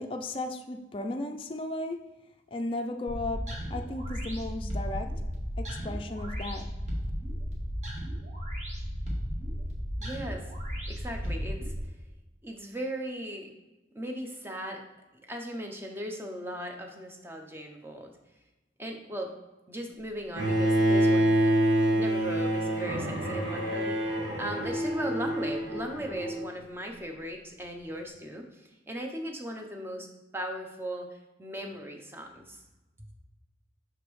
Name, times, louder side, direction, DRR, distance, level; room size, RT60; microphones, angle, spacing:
voice 1, 0.0-2.0 2.5-3.4 3.7-5.1 5.6-6.7, left 2 dB, 30° left, 4 dB, 0.4 m, -35 dB
sound 1, 3.1-11.8, equal, 40° right, 1.2 m, -34 dB
voice 2, 10.0-10.5 10.9-11.7 12.4-13.5 13.9-14.8 15.3-18.1 18.8-19.3 19.7-21.5 21.9-30.1 30.3-32.6, equal, 15° right, 2 dB, 0.6 m, -38 dB
Bowed string instrument, 20.4-26.4, right 1 dB, 90° right, 1.6 m, -26 dB
6.0 x 5.0 x 3.1 m, 1.1 s
head